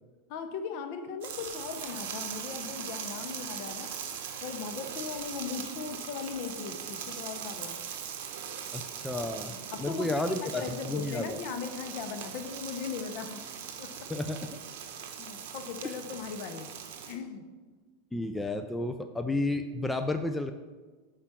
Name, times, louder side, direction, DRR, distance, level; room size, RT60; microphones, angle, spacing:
voice 1, 0.3-3.9 4.4-7.8 9.5-13.4 13.8-13.9 15.2-16.7 17.1-17.4, left 6 dB, 55° left, 7 dB, 0.8 m, -38 dB
sound 1, 1.2-17.2, right 8 dB, 70° right, 1.0 m, -40 dB
voice 2, 8.7-9.5 9.8-11.4 14.1-14.5 18.1-20.5, left 2 dB, 5° left, 7 dB, 0.3 m, -32 dB
5.6 x 5.0 x 6.0 m, 1.3 s
supercardioid pair, 135°, 0 cm